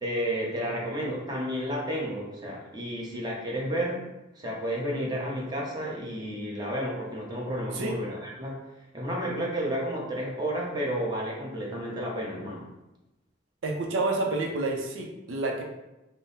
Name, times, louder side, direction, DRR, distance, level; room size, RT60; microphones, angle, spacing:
voice 1, 0.0-4.0 4.3-8.6 8.9-12.6, equal, 20° right, -3 dB, 0.8 m, -31 dB
voice 2, 13.6-15.6, right 2 dB, 90° right, 1 dB, 0.5 m, -29 dB
3.7 x 2.0 x 4.0 m, 0.96 s
head